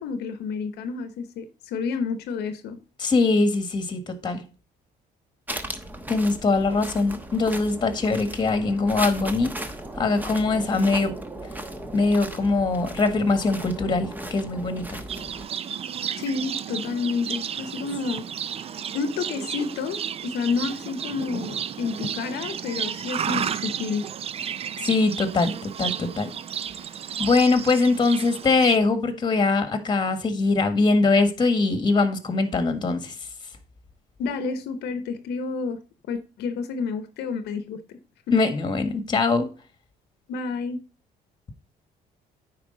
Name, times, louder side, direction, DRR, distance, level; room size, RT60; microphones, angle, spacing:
voice 1, 0.0-2.8 16.2-18.3 18.9-24.1 34.2-35.8 36.1-38.0 40.3-40.8, left 5 dB, 75° left, 0.9 m, -30 dB
voice 2, 3.0-4.4 6.1-9.5 10.0-11.1 11.9-15.0 24.8-26.3 27.2-33.1 38.3-39.5, left 3 dB, 25° left, 1.5 m, -22 dB
sound 1, 5.5-15.5, right 1 dB, 10° right, 1.0 m, -36 dB
Livestock farm animals working animals, 15.1-28.8, right 8 dB, 35° right, 0.4 m, -32 dB
9.4 x 4.7 x 3.8 m
cardioid pair, 110°, 17 cm